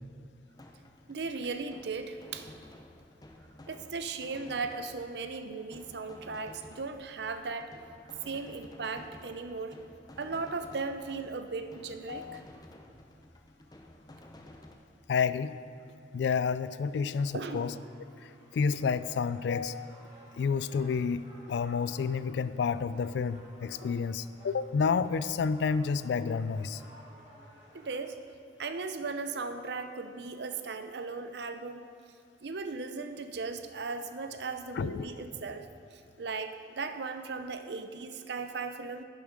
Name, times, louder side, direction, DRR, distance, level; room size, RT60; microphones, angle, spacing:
sound 1, 0.5-14.8, left 1 dB, 20° left, 0.7 m, -53 dB
voice 1, 1.1-2.5 3.7-7.7 8.2-9.8 10.2-12.4 17.3-17.6 27.7-28.2 28.6-31.8 32.4-39.0, right 4 dB, 65° right, 8 dB, 0.6 m, -37 dB
voice 2, 12.1-12.4 15.1-15.5 16.1-17.7 18.5-19.9 20.4-26.8 34.8-35.1, left 5 dB, 65° left, 15 dB, 0.3 m, -30 dB
sound 2, 17.1-27.9, equal, 25° right, 2.8 m, -56 dB
11.0 x 6.9 x 5.2 m, 2.2 s
head